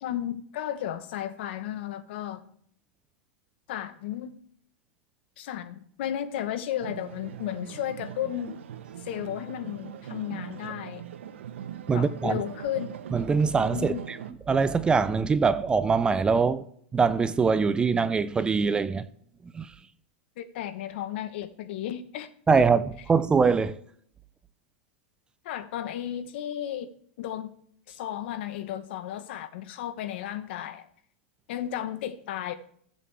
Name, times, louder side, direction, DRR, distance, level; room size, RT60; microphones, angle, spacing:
voice 1, 0.0-2.4 3.7-4.4 5.4-8.6 9.0-11.0 11.9-12.9 13.7-14.1 20.4-22.3 25.4-26.9 27.2-27.5 27.9-30.9 31.5-32.5, left 11 dB, 60° left, 1.0 m, -34 dB
sound 1, 6.8-14.3, right 10 dB, 80° right, 0.8 m, -41 dB
voice 2, 11.9-12.4 13.1-14.2 14.5-16.6 16.9-19.0 19.5-19.7 22.5-23.8, right 5 dB, 15° right, 0.4 m, -23 dB
15.5 x 7.7 x 3.3 m
hypercardioid pair, 130°, 6 cm